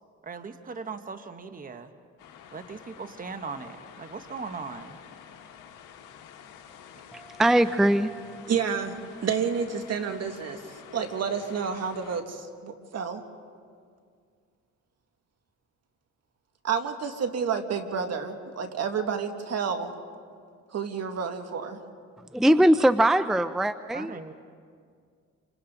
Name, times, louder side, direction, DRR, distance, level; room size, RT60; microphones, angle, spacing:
voice 1, 0.2-1.9 2.5-5.0 23.9-24.3, right 4 dB, 30° right, 8 dB, 1.1 m, -39 dB
sound 1, 2.2-12.2, left 8 dB, 85° left, 1.8 m, -49 dB
voice 2, 7.1-8.4 22.3-24.1, right 1 dB, ahead, 12 dB, 0.5 m, -21 dB
voice 3, 8.5-10.6 10.9-13.2 16.6-19.9 20.7-21.8, right 6 dB, 55° right, 5 dB, 2.0 m, -30 dB
29.5 x 26.0 x 3.9 m, 2.2 s
cardioid pair, 90°, 30 cm